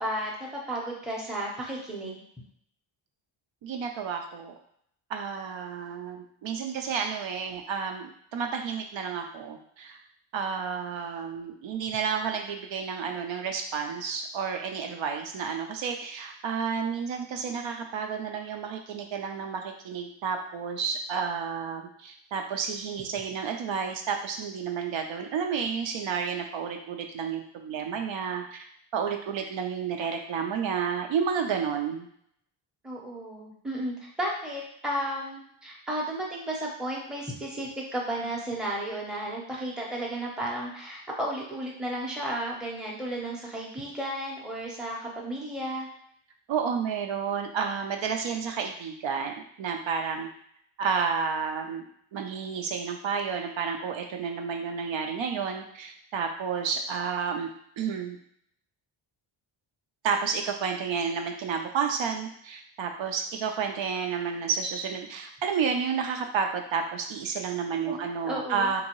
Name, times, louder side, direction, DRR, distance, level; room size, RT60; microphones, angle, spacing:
voice 1, 0.0-2.2 32.8-45.9 67.9-68.0 68.2-68.7, right 1 dB, ahead, -3 dB, 0.6 m, -33 dB
voice 2, 3.6-4.5 5.1-10.0 10.3-28.6 28.9-32.1 46.5-50.3 50.8-51.9 52.1-57.5 57.8-58.2 60.0-68.8, right 6 dB, 70° right, 4 dB, 0.5 m, -31 dB
3.7 x 2.7 x 2.9 m, 0.69 s
wide cardioid pair, 145°, 49 cm